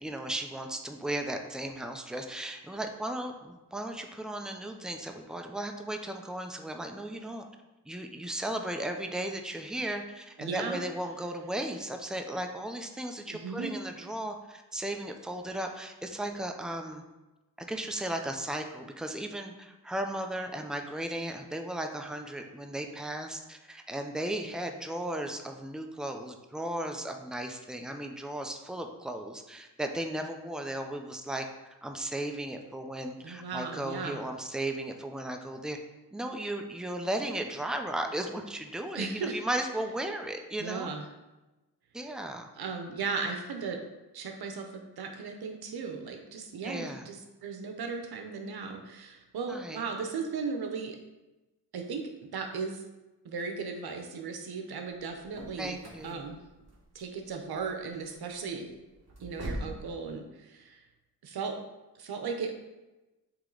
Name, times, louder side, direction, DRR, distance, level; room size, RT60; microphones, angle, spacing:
voice 1, 0.0-7.4 7.8-17.0 17.7-31.4 31.8-35.8 36.1-40.9 41.9-42.5 46.6-47.0 49.5-49.8 55.6-56.3 59.5-59.7, right 1 dB, ahead, 4 dB, 0.7 m, -36 dB
voice 2, 10.4-10.8 13.3-13.8 33.2-34.2 38.9-39.4 40.6-41.0 42.6-43.8 44.1-51.0 51.7-52.8 53.2-56.4 56.9-58.7 59.2-60.8 61.2-61.6 62.0-62.5, right 5 dB, 85° right, 4 dB, 0.9 m, -36 dB
sound 1, 54.9-59.8, right 1 dB, 45° right, 1.9 m, -43 dB
7.8 x 3.2 x 3.9 m, 1.1 s
cardioid pair, 60°, 37 cm